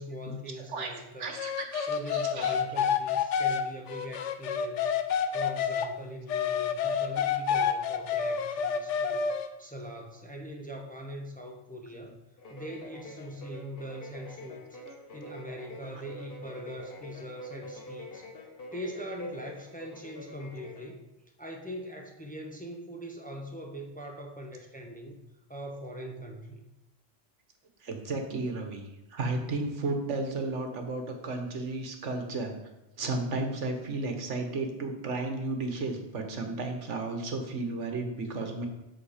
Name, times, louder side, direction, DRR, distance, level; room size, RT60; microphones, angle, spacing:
voice 1, 0.0-1.4 1.9-5.0 5.3-12.2 12.5-14.8 15.1-18.3 18.7-21.1 21.4-25.2 25.5-26.6, equal, 10° left, 1 dB, 0.9 m, -42 dB
voice 2, 0.7-2.6 27.8-28.8 29.1-32.5 33.0-38.7, right 3 dB, 80° right, 5 dB, 1.5 m, -33 dB
sound 1, 1.3-5.9 6.3-9.5, left 7 dB, 85° left, 1.0 m, -29 dB
sound 2, 12.4-21.0, left 1 dB, 55° left, 1.4 m, -45 dB
8.2 x 6.2 x 5.0 m, 0.96 s
omnidirectional pair, 1.2 m